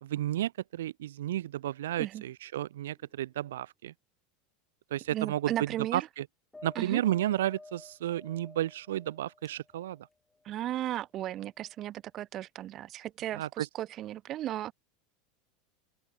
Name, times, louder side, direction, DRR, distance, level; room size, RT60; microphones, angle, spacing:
voice 1, 0.0-3.9 4.9-6.2 6.6-10.1 13.3-13.7, right 13 dB, 65° right, 0.8 m, -32 dB
sound 1, 2.9-3.3 5.0-5.1 6.5-10.9 11.6-11.8, left 2 dB, 10° left, 2.0 m, -53 dB
voice 2, 5.1-6.1 6.8-7.0 10.4-14.7, right 13 dB, 40° right, 0.4 m, -35 dB
open air
figure-of-eight pair, 80°, 0 cm